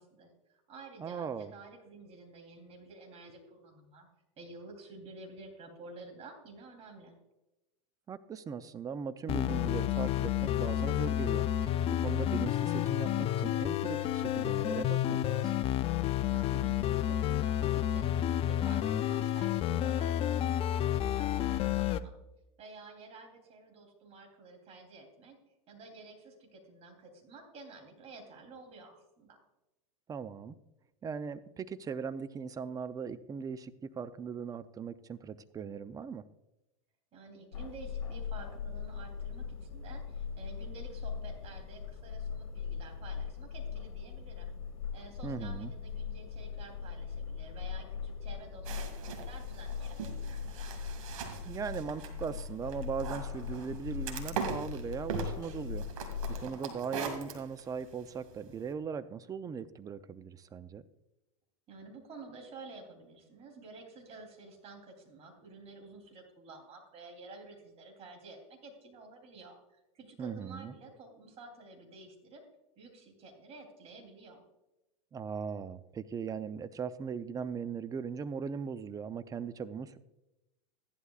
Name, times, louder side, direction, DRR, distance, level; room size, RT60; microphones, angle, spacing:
voice 1, 0.0-4.1 4.4-7.1 16.3-22.1 22.6-25.4 25.7-29.4 37.1-44.5 44.9-50.7 61.7-69.6 69.9-72.4 72.8-74.4, right 3 dB, 35° right, 3 dB, 3.3 m, -51 dB
voice 2, 1.0-1.5 8.1-15.5 30.1-30.6 31.0-36.2 45.2-45.7 51.4-56.1 56.4-60.8 70.2-70.7 75.1-80.0, right 6 dB, 20° right, 13 dB, 0.5 m, -39 dB
sound 1, 9.3-22.0, left 12 dB, 35° left, 0.5 m, -30 dB
sound 2, 37.5-56.5, left 6 dB, 75° left, 1.5 m, -40 dB
sound 3, 48.6-58.7, right 6 dB, 75° right, 2.2 m, -42 dB
14.5 x 11.5 x 2.4 m, 0.96 s
hypercardioid pair, 110°, 18 cm